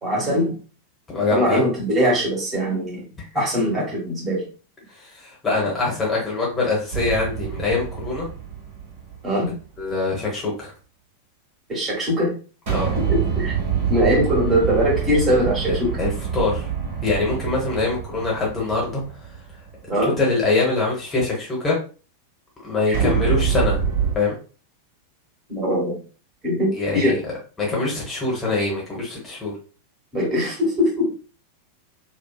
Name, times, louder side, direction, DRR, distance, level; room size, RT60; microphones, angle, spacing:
voice 1, 0.0-0.6 1.3-3.1 3.3-4.4 9.2-9.6 11.7-12.3 13.1-13.6 13.9-15.9 19.9-20.1 22.9-23.0 25.5-26.0 26.4-27.2 30.1-31.1, equal, 20° right, -3 dB, 1.3 m, -21 dB
voice 2, 1.1-1.6 3.3-3.5 4.9-8.3 9.8-10.7 12.7-12.9 15.7-16.7 17.0-19.0 20.2-21.8 22.6-23.8 24.1-24.3 26.7-27.2 27.6-29.5, left 3 dB, 15° left, -4 dB, 1.0 m, -24 dB
sound 1, 6.9-9.5 12.7-19.9 22.9-24.1, right 8 dB, 50° right, 1.2 m, -26 dB
2.6 x 2.3 x 2.3 m, 0.37 s
figure-of-eight pair, 90°, 0 cm